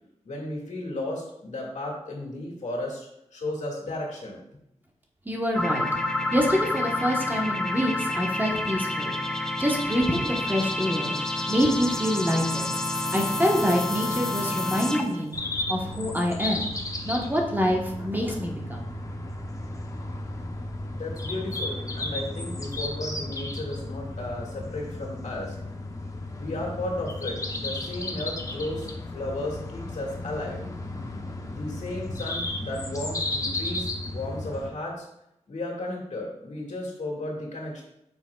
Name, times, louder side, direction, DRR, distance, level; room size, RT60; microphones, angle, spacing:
voice 1, 0.2-4.4 20.9-25.6 26.3-30.6 31.5-35.1 35.5-37.8, left 1 dB, 75° left, -2 dB, 2.1 m, -34 dB
voice 2, 5.2-5.9 6.3-9.1 9.6-11.1 11.5-12.7 13.1-15.4 15.7-16.7 17.0-18.9, equal, 15° right, 0 dB, 1.2 m, -26 dB
sound 1, 5.5-15.3, left 2 dB, 5° left, 0.7 m, -29 dB
sound 2, 15.3-34.7, left 2 dB, 25° left, 0.9 m, -34 dB
8.9 x 6.3 x 2.4 m, 0.82 s
wide cardioid pair, 90°, 12 cm